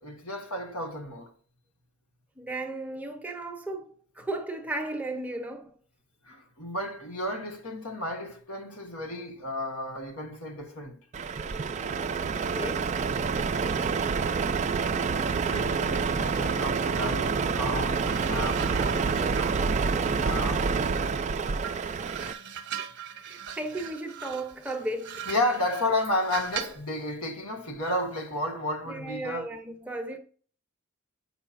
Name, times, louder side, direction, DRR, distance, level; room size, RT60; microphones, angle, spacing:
voice 1, 0.0-1.3 6.3-11.0 15.4-20.7 25.3-29.5, left 1 dB, 80° left, 1.6 m, -32 dB
voice 2, 2.4-5.8 12.4-12.9 23.2-25.3 28.9-30.2, right 2 dB, 5° right, 0.8 m, -35 dB
Truck, 11.1-22.3, right 5 dB, 30° right, 0.3 m, -27 dB
sound 1, 17.9-21.2 21.6-26.9 27.8-28.1, right 8 dB, 50° right, 0.8 m, -41 dB
7.8 x 5.5 x 2.5 m
head